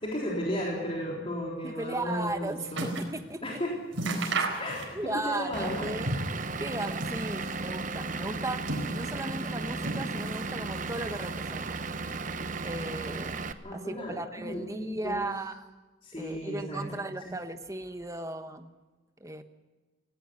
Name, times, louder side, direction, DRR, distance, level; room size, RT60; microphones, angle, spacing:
voice 1, 0.0-2.9 3.4-3.7 4.6-5.0 5.3-5.9 13.6-15.2 16.0-17.0 17.3-17.4, equal, 30° left, -3 dB, 3.9 m, -34 dB
voice 2, 1.6-3.6 4.4-4.5 4.9-6.2 6.6-8.6 8.9-11.8 12.6-13.4 13.7-15.7 16.2-18.7 19.2-19.4, right 2 dB, 15° right, 8 dB, 1.2 m, -36 dB
sound 1, 2.0-3.2 3.5-3.6 3.9-5.2 5.5-6.4 6.8-7.7 8.3-9.3 9.8-10.5 10.8-11.5 12.2-12.3, right 2 dB, 85° right, 4.4 m, -34 dB
Vehicle / Engine, 5.5-13.5, right 3 dB, 40° right, 1.0 m, -35 dB
18.0 x 17.0 x 9.8 m, 1.2 s
head